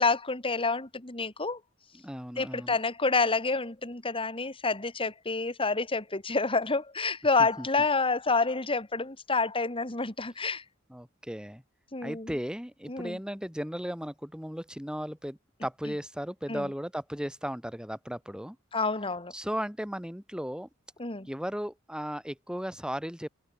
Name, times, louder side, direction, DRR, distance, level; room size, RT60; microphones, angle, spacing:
voice 1, 0.0-1.6 2.4-10.6 11.9-12.3 12.9-13.2 16.5-16.7 18.7-19.3 21.0-21.3, left 3 dB, 25° left, 2.5 m, -28 dB
voice 2, 1.9-2.7 7.6-7.7 10.9-11.6 12.0-18.6 19.3-20.7 21.3-23.3, equal, 5° right, 6.2 m, -36 dB
head